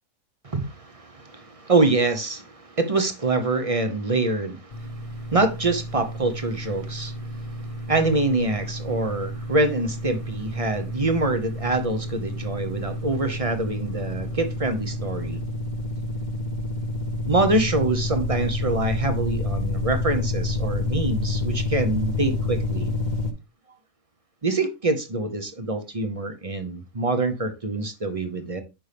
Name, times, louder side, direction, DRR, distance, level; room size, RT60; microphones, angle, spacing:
voice 1, 0.4-15.4 17.3-22.9 24.4-28.6, right 2 dB, 30° right, 0.8 m, -25 dB
sound 1, 4.7-23.3, left 2 dB, 35° left, 1.0 m, -29 dB
9.0 x 5.4 x 3.4 m
omnidirectional pair, 1.4 m